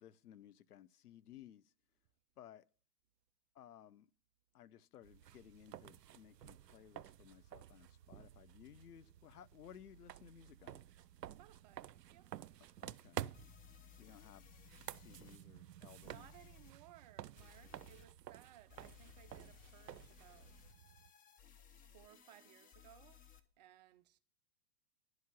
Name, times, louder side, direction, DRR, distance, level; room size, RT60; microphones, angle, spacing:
voice 1, 0.0-1.6 2.4-2.6 3.5-4.1 4.5-10.8 12.8-13.2 14.0-14.4 15.0-16.3, left 10 dB, 70° left, 0.7 m, -59 dB
sound 1, 5.0-21.1, right 11 dB, 85° right, 0.5 m, -52 dB
voice 2, 11.3-12.3 14.0-14.3 15.7-20.6 21.9-23.3 23.6-24.2, right 13 dB, 30° right, 0.4 m, -63 dB
sound 2, 12.7-12.8 13.3-15.4 16.0-16.7 17.4-18.1 18.7-23.4, left 9 dB, 15° left, 0.7 m, -61 dB
11.0 x 4.9 x 8.2 m
figure-of-eight pair, 105°, 48 cm